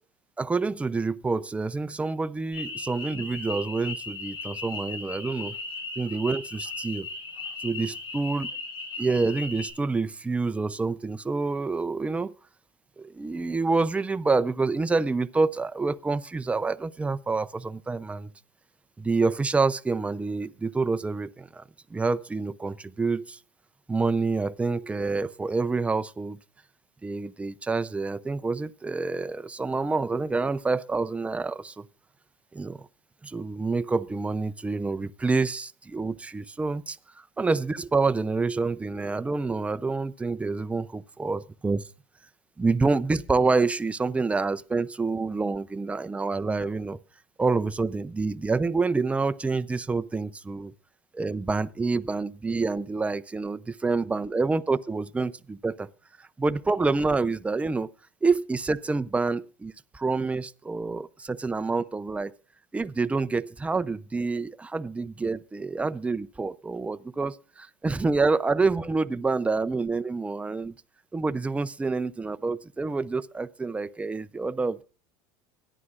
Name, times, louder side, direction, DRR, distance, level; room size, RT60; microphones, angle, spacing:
voice 1, 0.4-5.5 6.0-7.1 7.6-8.5 9.0-12.3 13.0-18.3 19.0-21.6 21.9-23.4 23.9-26.4 27.0-31.8 32.5-32.9 33.2-37.0 37.4-41.8 42.6-47.0 47.4-50.7 51.1-55.9 56.4-57.9 58.2-62.3 62.7-70.7 71.1-74.8, right 3 dB, 10° right, 0.6 m, -27 dB
sound 1, 2.5-9.7, left 3 dB, 50° left, 6.7 m, -37 dB
23.5 x 10.0 x 2.5 m
hypercardioid pair, 85°, 11 cm